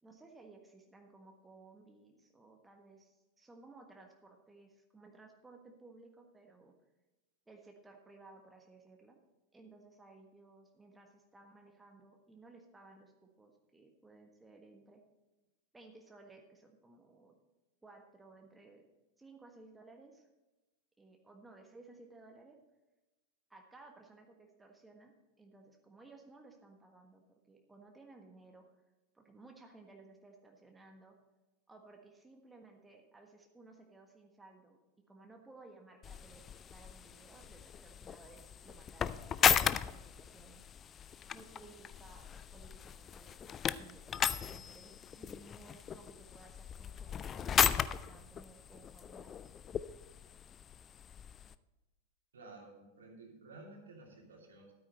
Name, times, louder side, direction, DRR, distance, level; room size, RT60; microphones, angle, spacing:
voice 1, 0.0-6.7 7.5-9.2 9.5-15.0 15.7-17.3 17.8-18.8 19.2-20.3 21.0-22.6 23.5-28.7 29.1-31.2 31.7-34.8 35.1-39.2 39.5-40.6 41.3-49.5, right 3 dB, 10° right, 2 dB, 1.3 m, -58 dB
sound 1, 36.0-51.5, left 8 dB, 25° left, 0.4 m, -36 dB
voice 2, 52.3-54.7, right 2 dB, 65° right, 1 dB, 2.6 m, -53 dB
13.0 x 8.9 x 4.2 m, 1.1 s
figure-of-eight pair, 90°, 0 cm